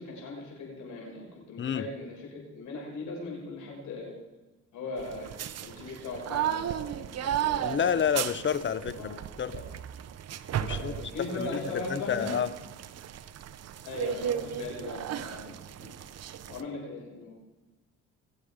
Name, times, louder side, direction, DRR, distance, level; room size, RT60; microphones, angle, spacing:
voice 1, 0.0-4.1 4.7-5.3 5.6-7.8 8.3-8.4 8.8-9.2 9.5-9.6 10.7-12.3 13.8-15.9 16.5-17.4, left 2 dB, 80° left, -2 dB, 6.3 m, -39 dB
sound 1, 5.0-16.6, right 10 dB, 55° right, 0.7 m, -35 dB
voice 2, 7.6-9.5 10.6-11.0 11.3-12.5, left 8 dB, 40° left, 15 dB, 0.7 m, -29 dB
21.0 x 8.4 x 5.0 m, 1.1 s
cardioid pair, 90°, 30 cm